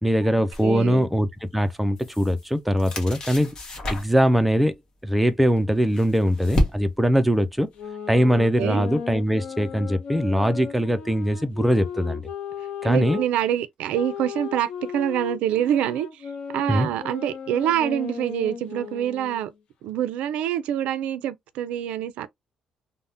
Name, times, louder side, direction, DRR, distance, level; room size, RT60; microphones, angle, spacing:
voice 1, 0.0-3.6 3.9-4.7 5.0-7.7 8.1-12.2 12.8-13.2 16.7-16.9, equal, ahead, 0.3 m, -21 dB
sound 1, 0.5-0.7 1.7-2.5 2.8-4.3 5.5-7.1, left 1 dB, 30° left, 1.0 m, -29 dB
voice 2, 0.6-1.1 8.6-8.9 12.8-19.5 19.8-22.3, right 10 dB, 90° right, 0.4 m, -26 dB
sound 2, 7.8-13.3 13.9-19.5, left 7 dB, 55° left, 0.7 m, -36 dB
3.4 x 2.0 x 2.6 m
cardioid pair, 160°, 2 cm